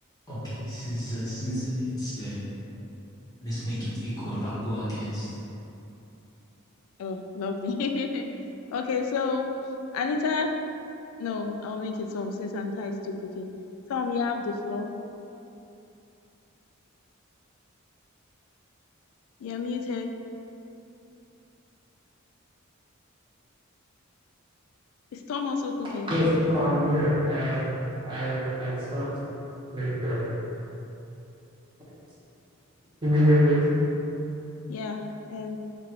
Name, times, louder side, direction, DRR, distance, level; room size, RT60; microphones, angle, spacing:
voice 1, 0.3-2.4 3.4-5.2, equal, 20° left, -11 dB, 0.9 m, -32 dB
voice 2, 7.0-8.2 8.7-9.5 9.9-10.6 11.2-13.5 13.9-14.9 19.4-20.1 25.1-26.2 34.7-35.6, left 4 dB, 80° left, 4 dB, 0.3 m, -30 dB
voice 3, 26.1-27.7 28.0-29.1 29.7-30.2 33.0-33.7, equal, 25° right, -10 dB, 1.1 m, -24 dB
3.2 x 2.5 x 4.4 m, 2.8 s
head